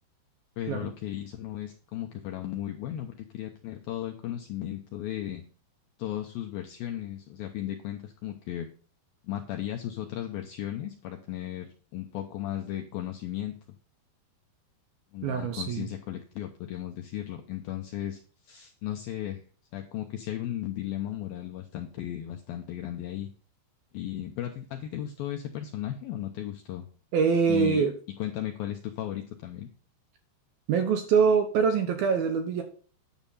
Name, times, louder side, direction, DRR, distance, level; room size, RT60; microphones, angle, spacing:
voice 1, 0.6-5.4 6.0-8.7 9.2-13.6 15.1-19.4 19.7-23.3 23.9-26.9 27.5-27.8 28.2-29.7, left 12 dB, 85° left, 4 dB, 2.1 m, -35 dB
voice 2, 15.2-15.9 27.1-27.9 30.7-32.6, right 6 dB, 75° right, 5 dB, 2.3 m, -24 dB
10.5 x 7.1 x 4.1 m, 0.41 s
omnidirectional pair, 5.3 m